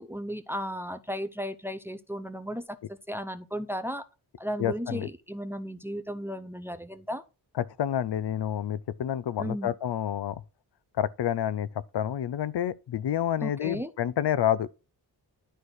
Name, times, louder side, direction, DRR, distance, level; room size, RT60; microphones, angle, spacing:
voice 1, 0.0-4.1 4.4-7.2 9.4-9.7 13.4-13.9, equal, 5° right, 0.5 m, -35 dB
voice 2, 4.6-5.1 7.5-10.4 11.0-14.7, left 10 dB, 80° left, 0.6 m, -29 dB
11.5 x 4.2 x 4.7 m
wide cardioid pair, 145°, 41 cm